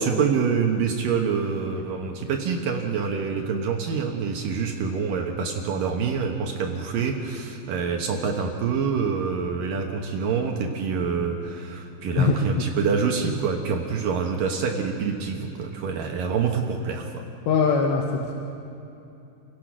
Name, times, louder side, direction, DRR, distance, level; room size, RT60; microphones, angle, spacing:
voice 1, 0.0-17.2, right 5 dB, 70° right, 3 dB, 2.2 m, -26 dB
voice 2, 17.5-18.3, left 5 dB, 75° left, 1 dB, 3.3 m, -21 dB
29.5 x 17.0 x 6.1 m, 2.8 s
omnidirectional pair, 5.4 m